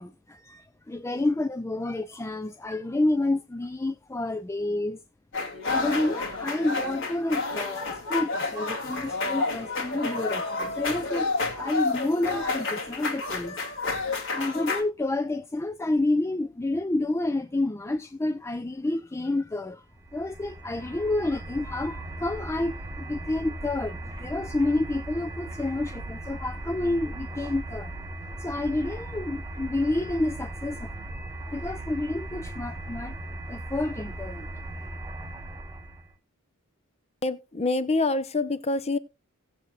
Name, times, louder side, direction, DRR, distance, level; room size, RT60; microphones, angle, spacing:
voice 1, 0.0-5.0 5.6-13.6 14.3-19.8 20.1-27.9 28.4-30.9 31.4-33.2 33.5-34.5, left 2 dB, 15° left, 0.4 m, -29 dB
sound 1, 5.3-14.8, left 3 dB, 60° left, 2.4 m, -30 dB
sound 2, 19.9-36.1, right 1 dB, 15° right, 1.5 m, -38 dB
voice 2, 37.2-39.0, left 3 dB, 30° left, 0.8 m, -26 dB
18.0 x 7.6 x 2.4 m
head